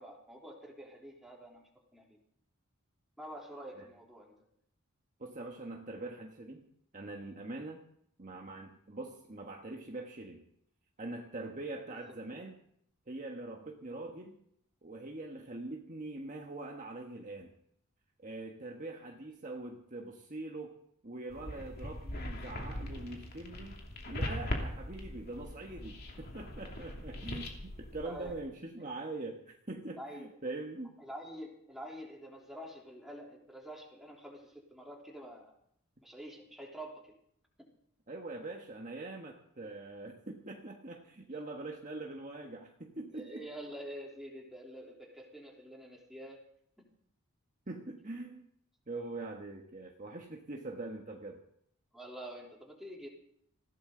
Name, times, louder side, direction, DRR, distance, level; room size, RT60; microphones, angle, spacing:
voice 1, 0.0-2.2 3.2-4.3 11.9-12.0 28.0-28.4 28.8-28.9 30.0-30.3 31.0-35.5 36.0-37.2 37.6-37.7 43.1-46.4 46.8-46.9 51.9-53.1, equal, ahead, -2 dB, 3.5 m, -47 dB
voice 2, 5.2-6.7 6.9-7.8 8.2-10.5 11.0-12.6 13.1-14.4 14.8-17.5 18.2-20.8 21.0-30.9 38.1-43.5 47.7-48.5 48.9-51.4, right 2 dB, 35° right, 1 dB, 1.4 m, -43 dB
sound 1, 21.3-28.4, left 1 dB, 45° left, 2.7 m, -41 dB
20.5 x 15.5 x 3.9 m, 0.70 s
head